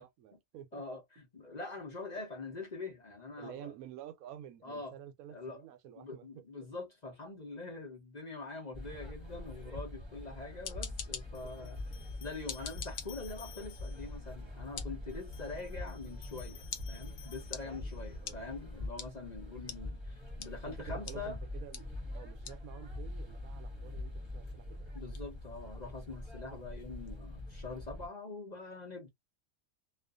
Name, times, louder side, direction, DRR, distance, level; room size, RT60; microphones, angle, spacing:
voice 1, 0.0-0.8 3.4-6.4 11.4-12.1 17.6-17.9 18.2-18.4 20.6-24.9, right 10 dB, 80° right, 1.0 m, -50 dB
voice 2, 0.7-3.7 4.6-4.9 5.3-5.6 6.0-11.8 12.2-21.4 24.9-29.1, left 3 dB, 40° left, 0.7 m, -44 dB
sound 1, 8.7-28.1, left 2 dB, 20° right, 1.0 m, -44 dB
sound 2, 10.1-10.2 11.3-14.2 15.1-18.2, left 9 dB, 85° left, 1.1 m, -56 dB
sound 3, 10.4-27.2, left 8 dB, 65° left, 0.9 m, -50 dB
2.4 x 2.4 x 2.3 m
omnidirectional pair, 1.5 m